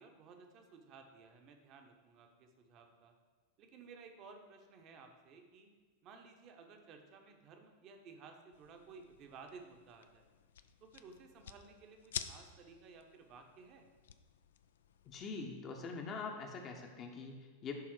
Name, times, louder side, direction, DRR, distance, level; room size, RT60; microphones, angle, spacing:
voice 1, 0.0-3.1 3.6-5.7 6.0-10.3 10.8-13.9, right 4 dB, 35° right, 4 dB, 1.0 m, -56 dB
sound 1, 8.5-15.2, left 8 dB, 60° left, 0.4 m, -50 dB
voice 2, 15.1-17.7, left 4 dB, 30° left, 2 dB, 0.9 m, -44 dB
10.5 x 3.6 x 4.9 m, 1.4 s
figure-of-eight pair, 90°, 0 cm